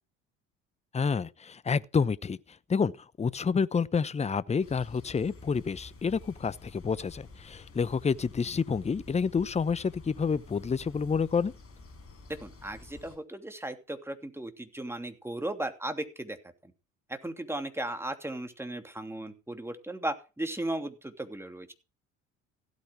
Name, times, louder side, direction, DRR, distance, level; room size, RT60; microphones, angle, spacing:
voice 1, 0.9-2.4 2.7-2.9 3.2-11.5, left 5 dB, 15° left, 0.8 m, -28 dB
sound 1, 4.6-13.2, left 3 dB, 35° left, 5.6 m, -50 dB
voice 2, 12.3-16.4 16.6-16.7 17.1-21.7, right 1 dB, 5° right, 2.9 m, -36 dB
16.0 x 9.3 x 4.7 m
figure-of-eight pair, 60°, 39 cm